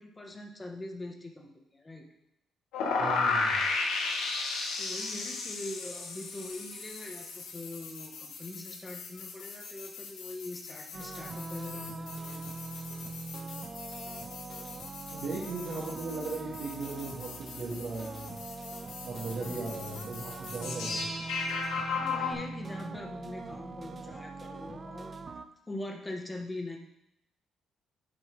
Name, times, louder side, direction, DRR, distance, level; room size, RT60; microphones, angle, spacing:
voice 1, 0.0-2.1 4.8-12.5 19.5-20.0 21.9-25.2 25.7-26.8, left 2 dB, 20° left, 2 dB, 1.4 m, -42 dB
sound 1, 2.7-22.3, left 4 dB, 85° left, 1.3 m, -36 dB
voice 2, 3.0-3.6 15.1-18.4 19.0-21.1, right 3 dB, 65° right, -7 dB, 2.0 m, -37 dB
sound 2, 10.9-25.5, right 4 dB, 35° right, 0.6 m, -42 dB
10.5 x 4.2 x 4.8 m, 0.84 s
cardioid pair, 90°, 0 cm